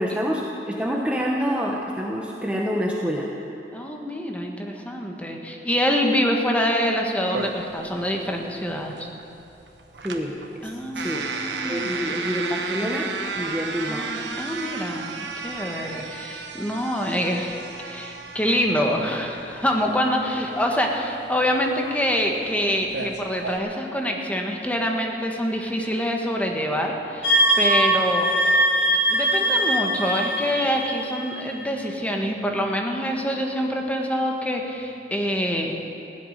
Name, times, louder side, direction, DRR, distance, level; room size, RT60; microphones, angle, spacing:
voice 1, 0.0-3.3 10.0-10.7 10.9-11.3 11.6-14.1 20.4-20.5, equal, 5° right, -2 dB, 1.1 m, -27 dB
voice 2, 3.7-9.1 10.6-12.1 13.9-17.6 17.8-28.3 29.1-35.8, equal, 10° left, 1 dB, 1.5 m, -26 dB
sound 1, 7.3-23.6, right 4 dB, 85° right, 1.2 m, -34 dB
sound 2, 27.2-31.7, right 1 dB, 80° left, 1.8 m, -21 dB
16.5 x 8.4 x 10.0 m, 2.8 s
head